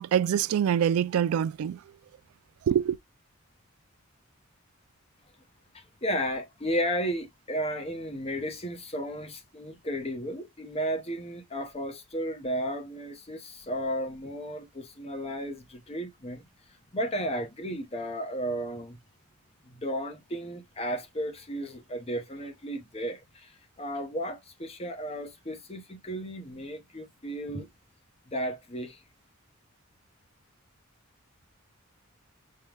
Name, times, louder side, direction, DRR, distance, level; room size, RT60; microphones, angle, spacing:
voice 1, 0.0-1.8 2.7-3.0, right 9 dB, 80° right, 0.3 m, -25 dB
voice 2, 5.7-16.5 16.9-19.0 19.7-27.7 28.3-29.0, equal, 30° left, 0.9 m, -34 dB
5.5 x 2.2 x 3.2 m
head